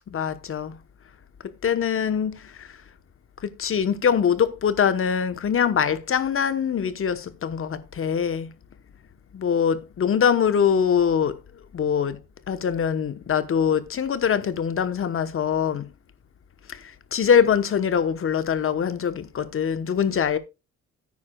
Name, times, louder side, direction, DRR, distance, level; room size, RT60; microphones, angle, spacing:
voice 1, 0.1-0.8 1.4-2.8 3.4-8.5 9.3-12.2 12.5-15.9 16.7-20.4, left 7 dB, 45° left, 1.0 m, -23 dB
13.5 x 9.5 x 2.3 m
cardioid pair, 90°, 30 cm